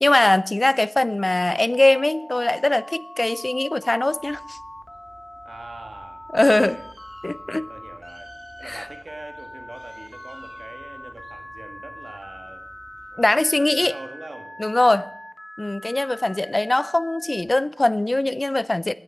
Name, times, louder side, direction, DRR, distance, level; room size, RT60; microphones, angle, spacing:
voice 1, 0.0-4.6 6.3-6.8 7.2-7.7 8.7-8.8 13.2-13.9 14.6-15.1 15.6-18.9, left 2 dB, 40° left, 0.5 m, -21 dB
Telephone, 1.7-17.4, left 1 dB, 25° left, 1.2 m, -41 dB
Bird, 4.2-13.1, right 1 dB, 85° right, 2.6 m, -53 dB
voice 2, 5.4-6.9 7.5-8.3 8.6-12.6 13.1-14.5 14.8-15.1, right 2 dB, 70° right, 1.8 m, -42 dB
9.7 x 9.6 x 7.7 m
wide cardioid pair, 45°, 0 cm